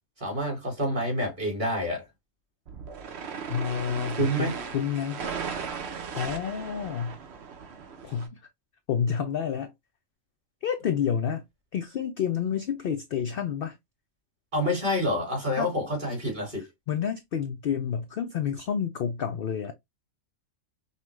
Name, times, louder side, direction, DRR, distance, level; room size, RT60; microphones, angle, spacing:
voice 1, 0.2-2.0 4.2-4.6 14.5-16.6, equal, 35° right, 2.4 m, -27 dB
sound 1, 2.7-8.3, right 6 dB, 55° right, 1.0 m, -37 dB
voice 2, 3.5-5.2 6.1-7.2 8.0-8.4 8.9-9.7 10.6-11.4 11.7-13.8 15.5-15.7 16.9-19.7, left 8 dB, 65° left, 0.6 m, -29 dB
5.6 x 2.2 x 3.1 m
omnidirectional pair, 1.4 m